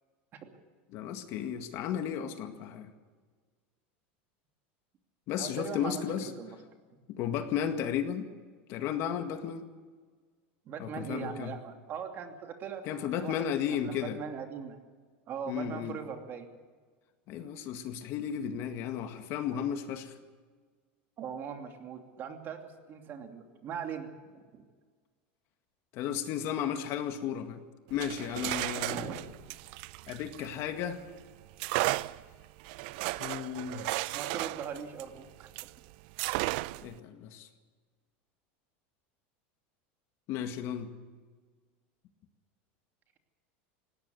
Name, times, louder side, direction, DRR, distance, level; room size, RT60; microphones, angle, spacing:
voice 1, 0.9-2.9 5.3-6.3 7.1-8.3 8.7-9.7 10.8-11.5 12.8-14.2 15.5-16.0 17.3-20.1 25.9-27.6 27.9-29.0 30.1-31.0 33.2-33.9 36.8-37.5 40.3-40.9, left 9 dB, 50° left, 7 dB, 1.9 m, -34 dB
voice 2, 5.4-6.6 10.7-14.8 15.3-16.5 21.2-24.6 28.8-29.2 34.1-35.5, right 7 dB, 35° right, 5 dB, 2.7 m, -40 dB
sound 1, 27.9-30.9 31.6-35.8 36.2-37.0, right 20 dB, 65° right, 0.5 m, -34 dB
19.0 x 17.5 x 7.8 m, 1.5 s
supercardioid pair, 140°, 6 cm